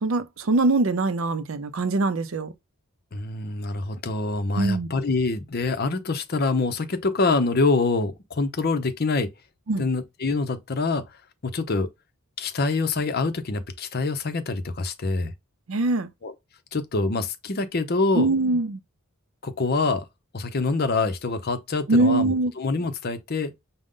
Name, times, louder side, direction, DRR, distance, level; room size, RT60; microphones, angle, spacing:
voice 1, 0.0-2.5 4.6-4.9 9.7-9.9 15.7-16.1 18.1-18.8 21.9-22.5, right 2 dB, 70° right, 0.5 m, -22 dB
voice 2, 3.1-9.3 9.8-11.0 11.4-11.9 12.4-15.3 16.2-16.3 16.7-18.3 19.4-20.1 20.3-23.5, left 3 dB, 45° left, 0.6 m, -25 dB
5.1 x 2.1 x 3.7 m
head